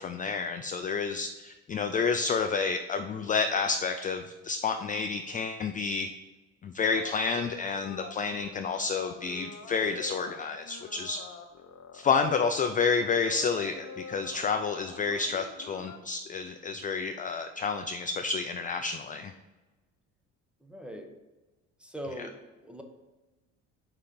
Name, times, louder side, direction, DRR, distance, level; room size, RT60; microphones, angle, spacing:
voice 1, 0.0-6.1 6.6-11.2 11.9-19.3, left 5 dB, 25° left, 6 dB, 0.4 m, -30 dB
sound 1, 6.8-16.0, left 5 dB, 55° left, 0.9 m, -46 dB
voice 2, 20.6-21.1 21.8-22.8, equal, 5° right, 4 dB, 0.8 m, -41 dB
4.9 x 4.3 x 5.2 m, 1.2 s
cardioid pair, 100°, 31 cm